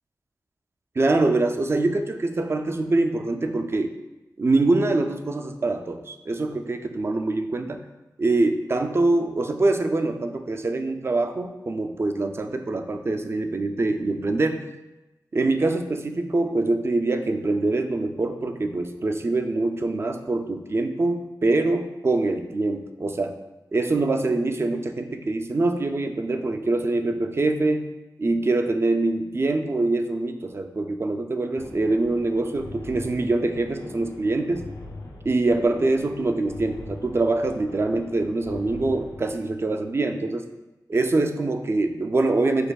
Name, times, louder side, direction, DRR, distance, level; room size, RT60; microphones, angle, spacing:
voice 1, 1.0-3.9 4.4-7.8 8.2-14.6 15.3-23.3 23.7-27.9 28.2-34.7 35.2-40.5 40.9-42.7, right 2 dB, 35° right, 6 dB, 0.3 m, -24 dB
sound 1, 31.5-39.4, left 2 dB, 85° left, 0.6 m, -41 dB
6.3 x 2.6 x 2.3 m, 1.0 s
wide cardioid pair, 100°, 7 cm